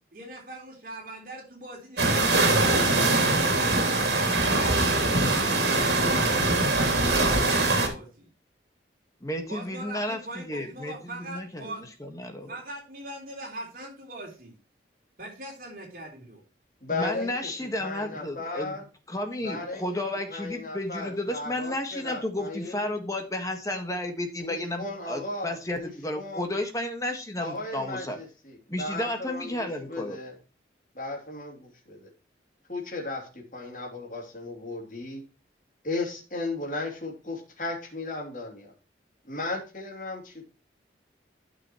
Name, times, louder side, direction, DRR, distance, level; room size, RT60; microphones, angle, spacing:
voice 1, 0.1-2.7 3.1-5.5 5.8-8.3 9.5-11.8 12.5-14.5 15.2-16.4, right 1 dB, 50° right, 0 dB, 3.6 m, -42 dB
sound 1, 2.0-7.9, right 2 dB, 70° right, 2.9 m, -22 dB
voice 2, 9.2-11.7 12.0-12.5 16.9-18.7 19.1-28.2 28.7-30.2, left 1 dB, 20° left, 5 dB, 1.5 m, -32 dB
voice 3, 16.8-17.5 17.8-18.9 19.4-20.0 20.3-22.9 24.4-26.5 27.4-30.4 30.9-32.1 32.7-35.2 35.8-38.7 39.3-40.4, left 2 dB, 45° left, 0 dB, 3.0 m, -35 dB
12.0 x 6.2 x 3.1 m, 0.34 s
head